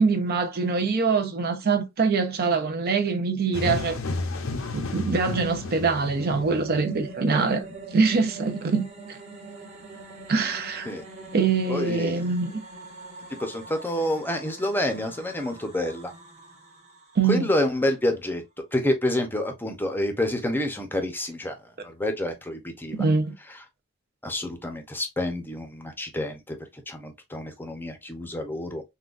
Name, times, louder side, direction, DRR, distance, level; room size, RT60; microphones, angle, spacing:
voice 1, 0.0-4.0 4.7-7.6 7.9-8.9 10.3-10.9 11.3-12.6 17.2-17.5 22.9-23.3, right 4 dB, 50° right, 0.5 m, -24 dB
sound 1, 3.5-7.0, left 3 dB, 70° left, 0.6 m, -32 dB
sound 2, 4.7-17.9, right 3 dB, 35° right, 1.0 m, -43 dB
voice 2, 11.7-12.2 13.4-16.1 17.3-18.4 18.7-21.6 21.8-23.0 24.2-26.6 26.9-28.8, left 1 dB, 10° left, 0.6 m, -28 dB
3.7 x 2.3 x 2.4 m
head